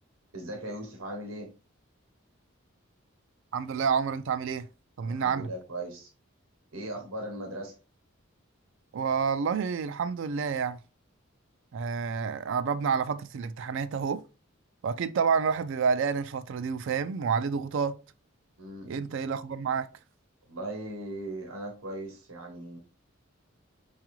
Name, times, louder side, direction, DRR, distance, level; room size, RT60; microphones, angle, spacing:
voice 1, 0.3-1.5 5.0-6.1 6.7-7.7 18.6-19.0 20.5-22.8, right 1 dB, 85° right, 0.8 m, -38 dB
voice 2, 3.5-4.7 5.0-5.5 8.9-10.8 11.7-14.2 14.8-18.0 18.9-19.9, right 6 dB, 65° right, 0.3 m, -29 dB
4.7 x 2.4 x 2.9 m
head